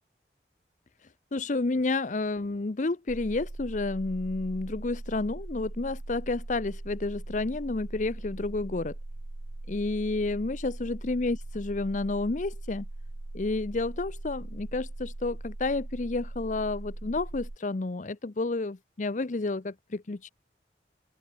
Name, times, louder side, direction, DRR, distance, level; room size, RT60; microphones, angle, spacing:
voice 1, 1.0-8.9 9.7-12.9 13.3-20.3, left 3 dB, 45° left, 0.6 m, -30 dB
sound 1, 3.1-17.6, right 2 dB, 40° right, 0.7 m, -40 dB
open air
head